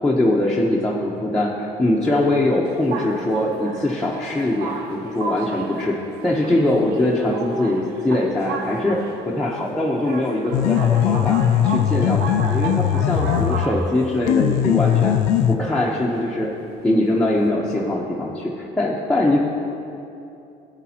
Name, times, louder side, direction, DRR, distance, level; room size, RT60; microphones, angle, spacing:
voice 1, 0.0-6.0 6.2-11.4 11.6-15.2 15.5-16.5 16.8-19.4, left 1 dB, 5° left, -5 dB, 0.9 m, -22 dB
sound 1, 2.6-17.5, right 4 dB, 75° right, 0.9 m, -34 dB
sound 2, 10.5-13.8 14.3-15.6, left 10 dB, 85° left, 0.4 m, -19 dB
13.5 x 8.4 x 2.9 m, 2.7 s
supercardioid pair, 95°, 16 cm